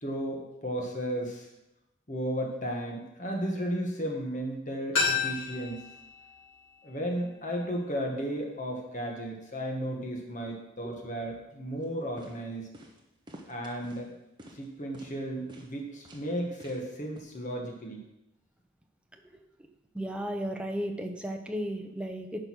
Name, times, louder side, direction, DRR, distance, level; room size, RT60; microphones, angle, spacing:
voice 1, 0.0-1.5 2.1-5.9 6.8-12.7 13.5-14.1 14.5-18.0, equal, 35° left, 1 dB, 1.5 m, -34 dB
sound 1, 4.9-7.7 8.0-8.1, left 5 dB, 75° left, 4.0 m, -33 dB
sound 2, 11.8-11.9 12.2-12.4 12.7-13.0 13.3-14.0 14.4-14.7 14.9-15.1 15.5-15.7 16.0-16.3 16.6-16.9 17.2-17.3, right 1 dB, 20° right, 1.1 m, -49 dB
voice 2, 19.9-22.5, equal, 5° right, 3 dB, 0.8 m, -34 dB
10.5 x 5.3 x 6.2 m, 0.88 s
head